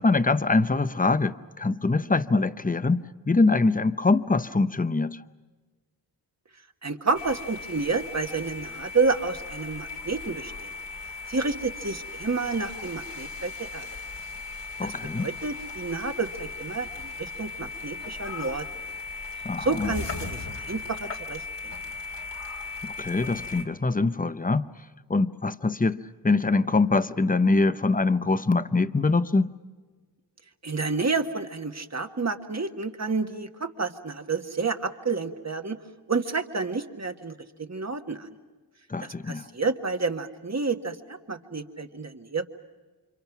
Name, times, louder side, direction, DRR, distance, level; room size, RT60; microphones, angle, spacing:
voice 1, 0.0-5.2 14.8-15.3 19.4-19.9 22.8-24.7 25.1-29.5 38.9-39.4, left 3 dB, 20° left, 0.8 m, -24 dB
voice 2, 6.8-10.7 11.3-13.9 14.8-18.6 19.6-21.7 30.6-35.8 36.1-38.3 39.0-42.4, right 4 dB, 40° right, 1.6 m, -30 dB
sound 1, 7.1-23.6, left 3 dB, 75° left, 2.8 m, -37 dB
29.0 x 26.0 x 6.0 m
wide cardioid pair, 65°, 43 cm